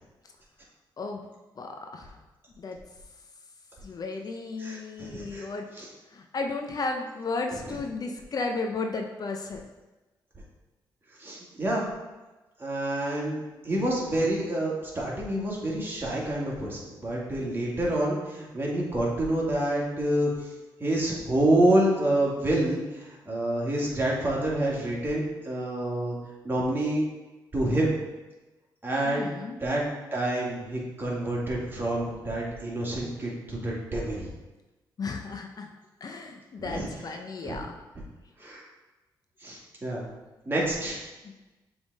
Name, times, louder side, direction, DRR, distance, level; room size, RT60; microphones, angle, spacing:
voice 1, 1.0-1.3 1.6-2.1 2.6-2.8 3.8-5.6 6.1-9.6 29.0-29.6 35.0-35.7 36.0-37.7 41.2-41.3, left 3 dB, 45° left, 4 dB, 0.6 m, -34 dB
voice 2, 4.6-5.5 5.8-5.9 7.7-7.8 11.2-11.9 12.6-20.3 20.8-26.2 26.4-27.1 27.5-27.9 28.8-29.3 29.6-29.8 30.1-34.3 36.6-36.9 37.4-37.6 38.4-38.6 39.4-40.0 40.5-41.0, right 1 dB, 25° right, -4 dB, 2.1 m, -27 dB
7.0 x 3.5 x 4.1 m, 1.1 s
supercardioid pair, 65°, 9 cm